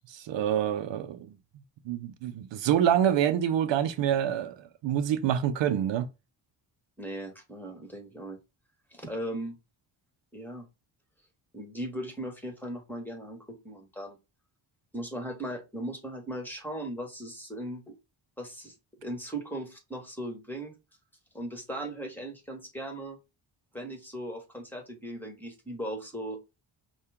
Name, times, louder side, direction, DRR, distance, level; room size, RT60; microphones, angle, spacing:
voice 1, 0.1-1.3 1.9-6.1, right 10 dB, 70° right, 0.6 m, -27 dB
voice 2, 7.0-8.4 8.9-9.6 10.3-10.6 11.5-14.2 14.9-17.9 18.4-18.7 19.0-20.7 21.3-23.2 23.7-26.4, right 1 dB, 5° left, 1.7 m, -38 dB
5.5 x 2.3 x 3.6 m
cardioid pair, 70°, 46 cm